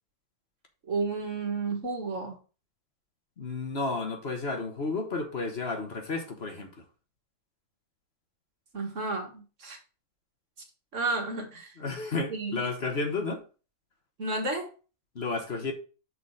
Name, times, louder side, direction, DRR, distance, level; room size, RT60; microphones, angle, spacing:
voice 1, 0.8-2.4 8.7-9.8 10.9-11.8 12.3-12.7 14.2-14.7, right 3 dB, 60° right, 2.1 m, -32 dB
voice 2, 3.4-6.7 11.8-13.4 15.1-15.7, left 3 dB, 50° left, 1.5 m, -32 dB
6.4 x 4.2 x 6.3 m
omnidirectional pair, 1.5 m